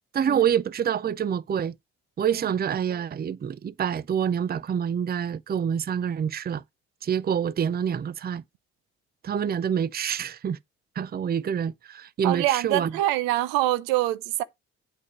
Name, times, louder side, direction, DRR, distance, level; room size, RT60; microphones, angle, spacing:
voice 1, 0.1-1.7 2.2-6.6 7.0-8.4 9.2-10.6 11.0-12.9, right 8 dB, 30° right, 0.5 m, -26 dB
voice 2, 12.2-14.4, right 15 dB, 80° right, 0.7 m, -25 dB
8.5 x 3.5 x 6.5 m
hypercardioid pair, 50°, 34 cm